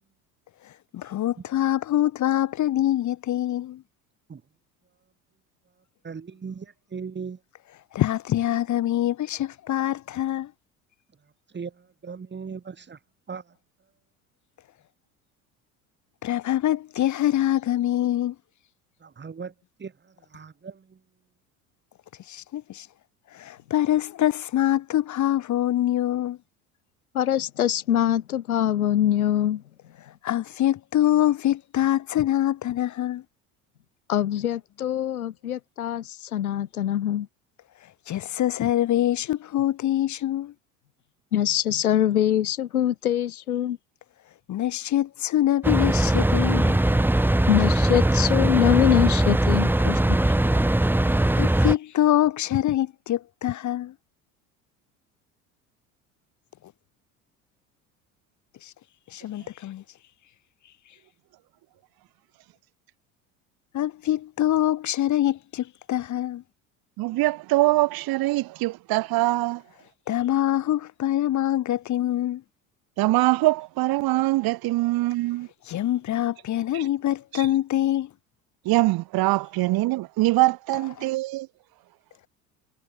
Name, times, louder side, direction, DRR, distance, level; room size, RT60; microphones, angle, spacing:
voice 1, 0.9-3.8 7.9-10.5 16.2-18.3 22.3-22.9 23.3-26.4 30.2-33.2 38.1-40.5 44.5-46.8 51.0-53.9 58.6-58.7 59.1-59.8 63.7-66.4 70.1-72.4 75.7-78.1, left 13 dB, 45° left, 1.4 m, -24 dB
voice 2, 6.0-7.4 11.5-13.0 13.3-13.6 19.0-19.5 19.8-21.0, right 5 dB, 25° right, 3.3 m, -38 dB
voice 3, 27.1-29.6 34.1-37.3 41.3-43.8 47.5-50.2, left 11 dB, 90° left, 2.5 m, -23 dB
sound 1, 45.6-51.7, right 1 dB, 5° right, 1.5 m, -21 dB
voice 4, 67.0-69.6 73.0-75.5 76.7-76.9 77.3-77.5 78.6-81.5, right 19 dB, 55° right, 2.4 m, -23 dB
hypercardioid pair, 70°, 42 cm